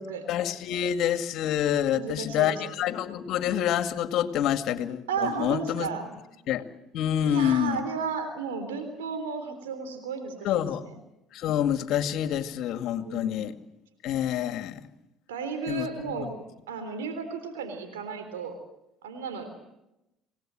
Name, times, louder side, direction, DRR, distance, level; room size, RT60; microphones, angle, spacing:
voice 1, 0.3-5.9 6.5-6.6 6.9-7.8 10.4-10.9 11.3-13.6 14.0-14.8 15.7-15.9 16.2-16.3, left 10 dB, 65° left, 8 dB, 2.1 m, -27 dB
voice 2, 1.9-2.6 5.1-6.1 7.2-10.9 12.9-13.5 15.3-16.4 16.7-18.6 19.0-19.5, right 5 dB, 90° right, 7 dB, 3.6 m, -34 dB
27.0 x 18.5 x 7.7 m, 0.87 s
hypercardioid pair, 70°, 0 cm